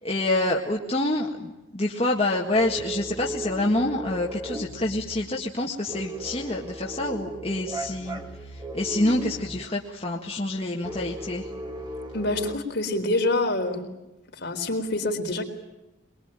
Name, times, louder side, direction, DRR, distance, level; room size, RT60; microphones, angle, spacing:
voice 1, 0.0-11.5, left 1 dB, 30° left, -2 dB, 1.8 m, -27 dB
sound 1, 2.5-5.3 5.9-9.7 10.8-12.6, right 1 dB, 20° right, 2.7 m, -36 dB
voice 2, 12.1-14.0 14.4-15.4, left 2 dB, 55° left, 3 dB, 4.2 m, -26 dB
23.0 x 23.0 x 9.0 m, 0.98 s
head